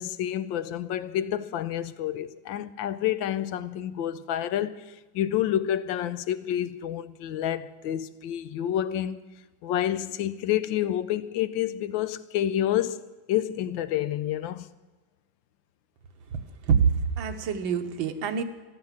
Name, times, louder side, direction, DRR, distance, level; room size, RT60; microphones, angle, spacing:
voice 1, 0.0-9.2 9.6-14.7, left 11 dB, 80° left, 1.4 m, -29 dB
voice 2, 16.6-18.4, right 6 dB, 80° right, 1.8 m, -25 dB
14.0 x 12.5 x 7.4 m
omnidirectional pair, 2.1 m